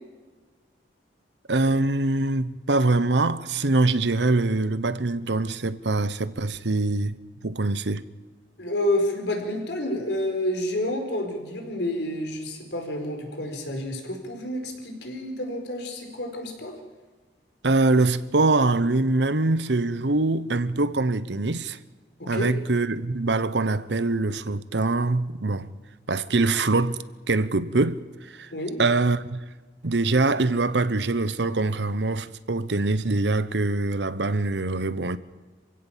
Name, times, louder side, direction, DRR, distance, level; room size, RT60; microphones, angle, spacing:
voice 1, 1.5-7.2 7.4-8.0 17.6-21.8 22.3-25.7 26.1-28.5 28.8-29.4 29.8-35.2, right 2 dB, 80° right, 1.0 m, -24 dB
voice 2, 8.6-16.7 22.2-22.5 28.5-28.8, left 1 dB, 75° left, 4.9 m, -29 dB
27.0 x 16.5 x 7.4 m
head